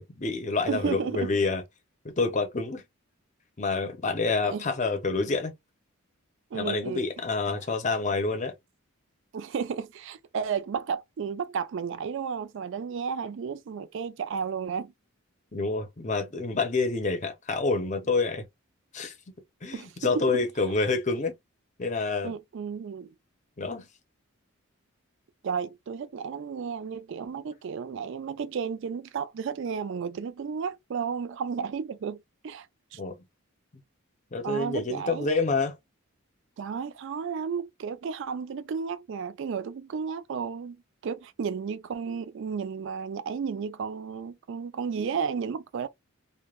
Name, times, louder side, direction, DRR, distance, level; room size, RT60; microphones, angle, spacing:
voice 1, 0.0-1.6 2.2-2.8 3.6-5.5 6.5-8.5 15.5-18.4 18.9-19.1 19.6-21.3 21.8-22.3 23.6-23.9 33.0-33.1 34.3-35.8, left 3 dB, 35° left, 0.6 m, -28 dB
voice 2, 0.7-1.3 4.4-4.6 6.5-7.1 7.5-7.6 9.3-14.9 19.7-20.4 22.2-23.1 25.4-32.2 32.4-32.7 32.9-33.0 34.4-35.3 36.6-45.9, right 6 dB, 60° right, 0.3 m, -33 dB
3.2 x 2.1 x 2.3 m
head